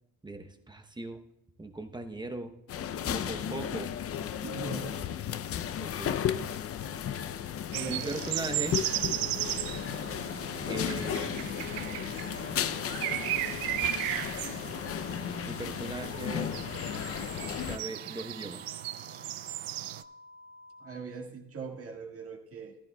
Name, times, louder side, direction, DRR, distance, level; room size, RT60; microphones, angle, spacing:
voice 1, 0.2-1.2 1.6-2.5 3.0-3.9 5.8-6.2 7.9-8.8 10.7-11.8 13.1-13.2 15.4-16.5 17.5-18.8, right 2 dB, 10° right, 6 dB, 0.8 m, -39 dB
sound 1, 2.7-17.8, left 9 dB, 40° left, 0.5 m, -34 dB
voice 2, 4.4-5.1 7.7-8.2 20.8-22.8, right 4 dB, 40° right, 1 dB, 1.7 m, -40 dB
sound 2, 7.7-20.0, right 16 dB, 80° right, 0.5 m, -36 dB
sound 3, 8.2-21.0, left 2 dB, 80° left, 1.2 m, -52 dB
15.0 x 13.0 x 2.3 m, 0.91 s
cardioid pair, 100°, 35 cm